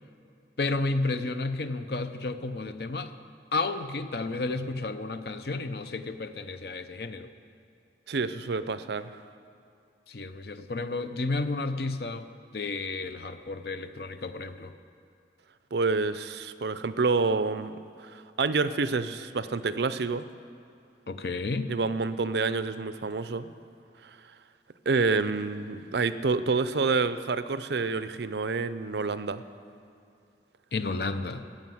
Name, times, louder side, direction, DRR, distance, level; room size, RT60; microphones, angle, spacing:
voice 1, 0.6-3.1 3.5-7.3 10.1-12.3 12.5-14.7 21.1-21.7 30.7-31.5, left 3 dB, 60° left, 9 dB, 0.7 m, -32 dB
voice 2, 8.1-9.1 15.7-17.7 18.0-20.3 21.7-23.5 24.0-24.1 24.9-29.4, right 4 dB, 70° right, 13 dB, 0.6 m, -28 dB
14.5 x 8.8 x 7.7 m, 2.7 s
head